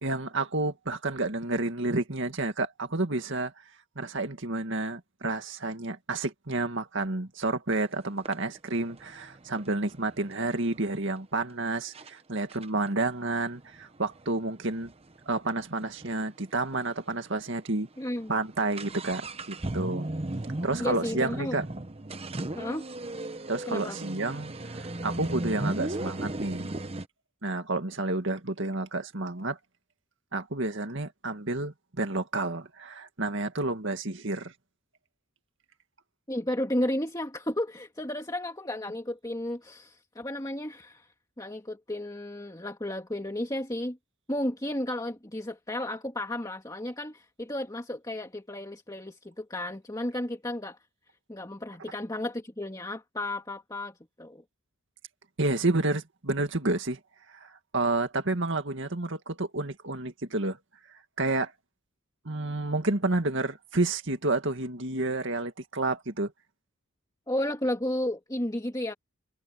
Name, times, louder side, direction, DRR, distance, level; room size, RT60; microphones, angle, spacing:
voice 1, 0.0-3.5 4.0-14.9 15.3-17.9 18.3-20.1 20.6-21.7 23.5-24.5 25.0-26.7 27.4-29.6 30.3-34.5 55.4-57.0 57.4-60.6 61.2-61.5 62.3-66.3, right 2 dB, 60° right, 2.1 m, -30 dB
sound 1, 7.7-7.8 8.2-10.9 11.5-11.6 11.9-12.1 12.5-16.2 16.5-16.6 16.7-16.8 17.5-17.6 17.9-27.1, right 1 dB, 30° right, 1.0 m, -36 dB
voice 2, 18.0-18.3 20.8-21.6 22.5-22.8 23.7-24.0 36.3-41.1 41.4-44.0 44.3-50.8 51.3-54.4 67.3-68.9, left 1 dB, 15° left, 2.1 m, -33 dB
head